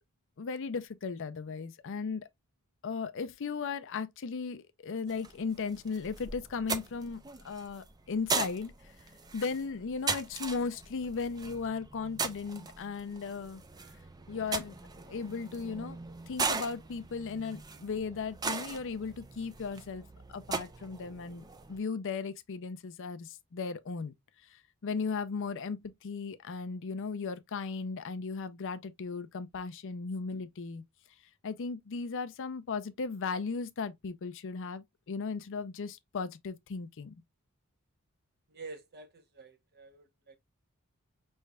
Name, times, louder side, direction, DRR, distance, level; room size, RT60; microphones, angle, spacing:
voice 1, 0.4-2.3 2.8-7.2 7.4-8.7 9.3-13.6 14.3-14.7 15.1-16.0 16.3-20.0 20.3-24.1 24.5-30.8 31.4-37.1, left 5 dB, 60° left, 0.5 m, -36 dB
sound 1, 5.1-21.8, right 4 dB, 15° right, 0.4 m, -39 dB
voice 2, 38.5-40.4, right 3 dB, 45° right, 0.9 m, -48 dB
5.4 x 3.3 x 2.3 m
head